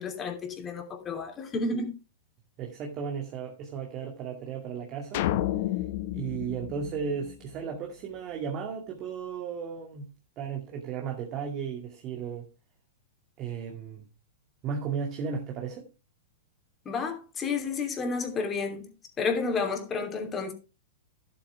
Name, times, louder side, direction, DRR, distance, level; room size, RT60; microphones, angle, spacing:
voice 1, 0.0-1.9 16.8-18.9 19.2-20.5, left 4 dB, 25° left, 3.0 m, -31 dB
voice 2, 2.6-5.3 6.1-10.1 10.4-12.5 13.4-14.0 14.6-15.8, right 6 dB, 35° right, 2.2 m, -35 dB
sound 1, 5.1-7.6, left 14 dB, 55° left, 0.9 m, -31 dB
11.5 x 8.3 x 3.4 m
hypercardioid pair, 115°, 0 cm